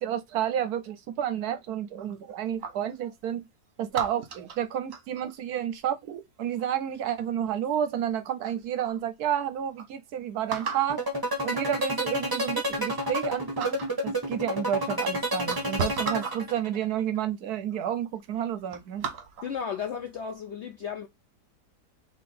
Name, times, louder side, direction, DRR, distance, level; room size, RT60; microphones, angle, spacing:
voice 1, 0.0-3.4 3.8-11.0 11.4-19.0, right 10 dB, 70° right, 1.1 m, -30 dB
sound 1, 2.0-2.9 3.9-5.4 7.0-7.4 8.1-8.2 8.4-9.0 9.4-9.5 9.8-9.9 10.5-11.0 11.9-12.0 12.5-13.3 13.6-14.0 14.9-15.0 15.4-16.4 17.3-17.4 17.7-18.0 18.3-19.6 20.1-20.3, right 5 dB, 55° right, 1.2 m, -36 dB
sound 2, 10.9-16.8, equal, 15° right, 1.1 m, -29 dB
voice 2, 19.4-21.1, left 7 dB, 70° left, 0.6 m, -34 dB
3.8 x 3.2 x 4.2 m
omnidirectional pair, 1.8 m